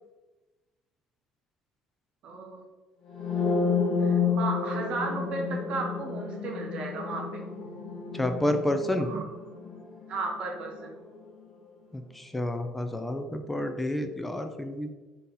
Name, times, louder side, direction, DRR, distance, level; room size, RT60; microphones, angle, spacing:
voice 1, 2.2-2.7 4.0-7.4 9.0-9.2 10.1-10.9, right 3 dB, 50° right, 1 dB, 0.6 m, -34 dB
sound 1, 3.1-10.9, left 5 dB, 35° left, 0.9 m, -30 dB
voice 2, 8.1-9.1 11.9-14.9, left 1 dB, 5° left, 6 dB, 0.3 m, -29 dB
3.7 x 2.8 x 3.9 m, 1.2 s
cardioid pair, 155°, 2 cm